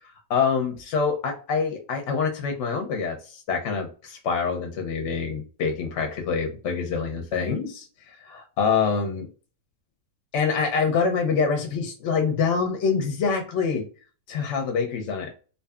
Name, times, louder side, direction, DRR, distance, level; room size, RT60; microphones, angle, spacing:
voice 1, 0.3-7.9 8.2-9.3 10.3-13.9 14.3-15.3, left 5 dB, 65° left, 3 dB, 0.8 m, -25 dB
2.6 x 2.5 x 2.3 m, 0.36 s
omnidirectional pair, 1.6 m